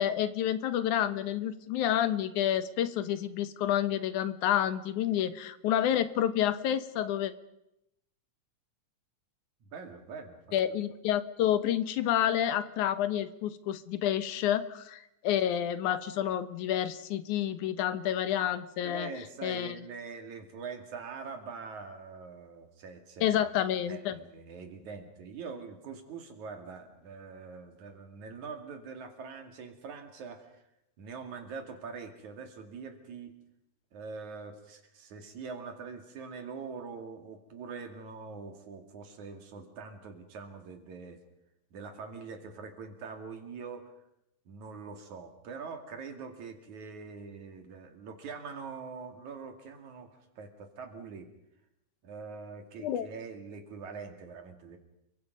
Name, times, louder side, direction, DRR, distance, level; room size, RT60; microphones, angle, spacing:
voice 1, 0.0-7.3 10.5-19.1 19.4-19.7 23.2-24.2 52.8-53.1, left 10 dB, 80° left, 13 dB, 2.5 m, -29 dB
voice 2, 9.6-10.8 18.8-23.4 23.9-30.6 31.0-33.4 33.9-41.2 41.7-43.9 44.5-51.3 52.0-54.8, right 5 dB, 75° right, 5 dB, 3.8 m, -44 dB
29.0 x 23.5 x 5.3 m, 0.84 s
omnidirectional pair, 3.4 m